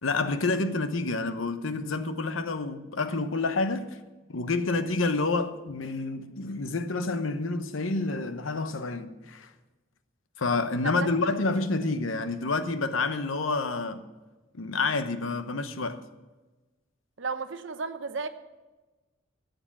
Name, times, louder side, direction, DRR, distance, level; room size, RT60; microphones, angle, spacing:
voice 1, 0.0-4.0 4.3-9.5 10.4-14.0 14.5-16.0, left 3 dB, 80° left, 0.9 m, -28 dB
voice 2, 17.2-18.3, right 4 dB, 65° right, 0.8 m, -33 dB
13.0 x 7.9 x 7.4 m
head